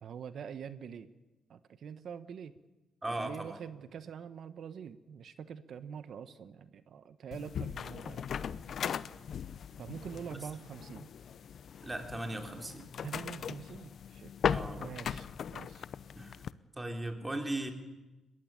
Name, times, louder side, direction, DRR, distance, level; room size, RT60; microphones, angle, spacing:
voice 1, 0.0-1.1 1.5-2.5 3.1-8.3 9.8-11.1 13.0-14.3 14.8-15.8, right 7 dB, 60° right, 12 dB, 1.0 m, -45 dB
voice 2, 3.0-3.6 11.8-12.8 14.5-14.9 16.1-16.4 16.8-17.7, right 1 dB, 15° right, 4 dB, 3.4 m, -37 dB
sound 1, 7.3-16.5, left 8 dB, 60° left, 0.7 m, -38 dB
21.0 x 16.0 x 9.7 m, 1.1 s
cardioid pair, 90°, 0 cm